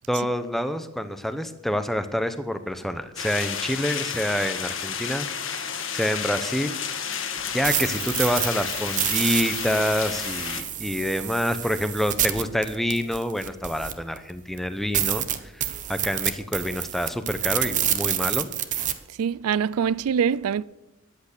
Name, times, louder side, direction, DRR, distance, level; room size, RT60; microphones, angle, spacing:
voice 1, 0.1-5.3 5.9-6.8 7.5-15.3 15.5-18.5, equal, ahead, 0.7 m, -27 dB
sound 1, 3.2-10.6, left 7 dB, 60° left, 1.5 m, -31 dB
sound 2, 7.4-14.2 14.6-14.7 14.9-18.9, right 10 dB, 35° right, 0.9 m, -28 dB
voice 2, 19.2-20.6, right 7 dB, 85° right, 0.4 m, -24 dB
14.0 x 10.5 x 6.7 m
head